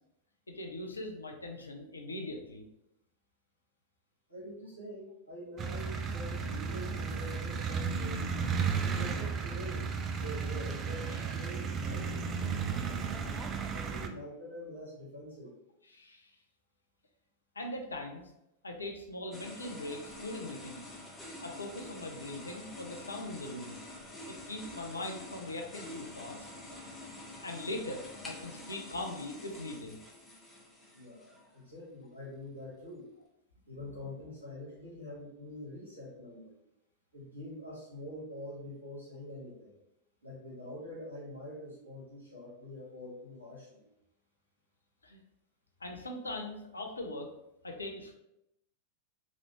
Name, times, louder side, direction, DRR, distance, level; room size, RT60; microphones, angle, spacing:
voice 1, 0.5-2.6 11.1-11.2 15.9-16.3 17.5-18.3 18.6-20.8 21.4-23.8 24.2-26.5 27.4-30.0 45.0-45.2 45.8-47.3 47.6-48.1, left 1 dB, 75° left, 2 dB, 0.5 m, -41 dB
voice 2, 4.3-8.4 8.8-12.4 12.6-13.2 13.7-15.5 30.9-33.0 33.7-36.6 37.1-39.7 40.2-43.9, left 1 dB, 80° right, -7 dB, 1.2 m, -45 dB
sound 1, 5.6-14.1, right 6 dB, 25° right, 0.3 m, -34 dB
sound 2, 19.3-31.6, left 1 dB, 10° left, 0.7 m, -47 dB
3.1 x 2.5 x 3.0 m, 0.84 s
figure-of-eight pair, 90°, 0 cm